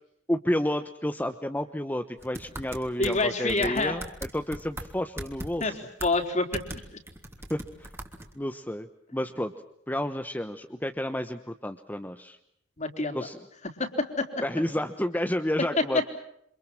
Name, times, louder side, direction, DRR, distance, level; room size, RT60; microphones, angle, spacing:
voice 1, 0.3-4.0 4.3-5.8 7.5-7.9 8.3-9.5 9.9-12.4 13.1-13.4 14.4-16.1, left 1 dB, 10° left, 7 dB, 1.1 m, -30 dB
sound 1, 2.2-3.2 3.5-4.9 5.2-5.7 6.0-6.2 6.5-6.8 7.1-8.3, right 1 dB, 15° right, 3.1 m, -38 dB
voice 2, 3.0-4.0 5.6-5.7 6.0-6.8 12.8-13.2 13.8-14.4, left 2 dB, 40° left, 4 dB, 4.1 m, -27 dB
28.5 x 26.0 x 6.1 m, 0.74 s
head